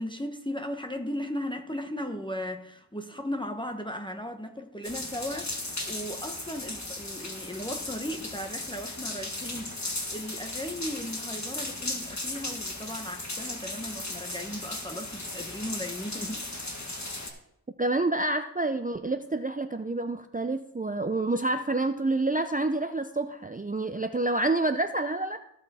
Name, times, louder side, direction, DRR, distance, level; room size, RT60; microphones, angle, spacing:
voice 1, 0.0-16.5, equal, 10° left, 0.9 m, -36 dB
sound 1, 4.8-17.3, left 2 dB, 45° left, 1.6 m, -36 dB
voice 2, 17.8-25.4, right 2 dB, 20° right, 0.5 m, -28 dB
14.5 x 5.6 x 4.2 m
wide cardioid pair, 45°, 39 cm